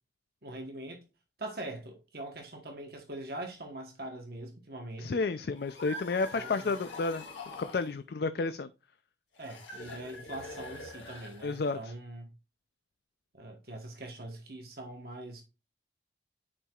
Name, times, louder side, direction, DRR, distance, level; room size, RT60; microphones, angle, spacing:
voice 1, 0.4-1.0 1.4-5.2 6.3-6.8 9.4-12.3 13.3-15.4, right 1 dB, 55° right, 1.2 m, -42 dB
voice 2, 5.0-7.2 7.6-8.7 11.4-11.9, left 4 dB, 60° left, 0.4 m, -31 dB
sound 1, 5.5-8.0 9.3-11.8, left 2 dB, 85° left, 2.1 m, -45 dB
9.8 x 4.6 x 2.4 m
head